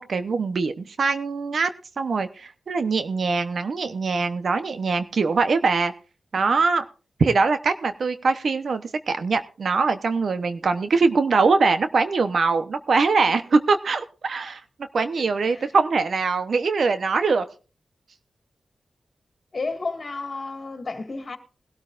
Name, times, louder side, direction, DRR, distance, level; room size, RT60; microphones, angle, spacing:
voice 1, 0.0-1.7 2.0-5.9 6.3-6.8 7.2-14.6 14.9-17.4, right 4 dB, 70° right, 0.9 m, -22 dB
voice 2, 19.5-21.4, left 3 dB, 45° left, 2.0 m, -32 dB
20.5 x 13.0 x 2.5 m
wide cardioid pair, 95°, 0 cm